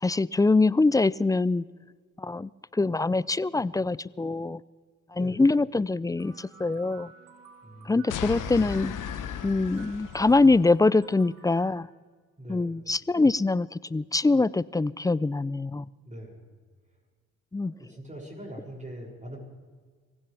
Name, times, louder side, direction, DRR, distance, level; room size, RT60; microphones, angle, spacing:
voice 1, 0.0-1.6 2.2-4.6 5.1-7.1 7.9-8.9 9.4-11.9 12.5-15.9 17.5-17.7, left 3 dB, 10° left, 21 dB, 0.4 m, -24 dB
voice 2, 5.1-5.4 7.6-8.0 12.4-12.7 16.0-16.4 17.8-19.4, right 1 dB, 20° right, -2 dB, 6.6 m, -42 dB
winter-wind, 6.2-11.7, right 4 dB, 70° right, 5.2 m, -52 dB
sound 1, 8.1-10.7, left 8 dB, 65° left, 1.3 m, -36 dB
25.0 x 16.0 x 3.4 m, 1.5 s
supercardioid pair, 65°, 34 cm